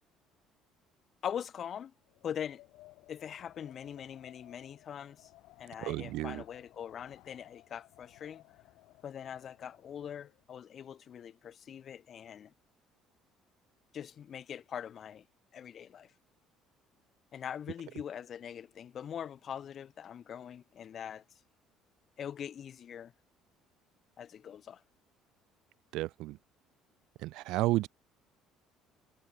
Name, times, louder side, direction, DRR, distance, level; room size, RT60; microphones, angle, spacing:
voice 1, 1.2-1.9 2.2-2.6 3.1-5.3 5.6-8.4 9.0-12.5 13.9-15.2 15.5-16.1 17.3-21.2 22.2-23.1 24.2-24.8, left 8 dB, 45° left, 2.7 m, -42 dB
Wind, 2.0-10.5, left 19 dB, 80° left, 5.6 m, -59 dB
voice 2, 5.8-6.4 25.9-26.4 27.2-27.9, right 18 dB, 75° right, 2.0 m, -32 dB
cardioid pair, 100°, 0 cm